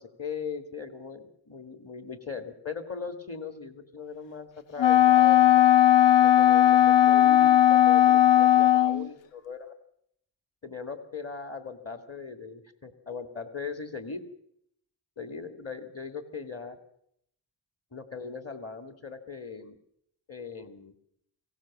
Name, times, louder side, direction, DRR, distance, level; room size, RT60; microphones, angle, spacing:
voice 1, 0.0-5.6 6.2-9.7 10.6-14.2 15.2-16.8 17.9-19.8 20.3-20.9, left 5 dB, 35° left, 8 dB, 2.3 m, -39 dB
Wind instrument woodwind instrument, 4.8-9.1, left 12 dB, 90° left, 1.1 m, -18 dB
24.5 x 17.0 x 7.4 m, 0.71 s
wide cardioid pair, 140°, 43 cm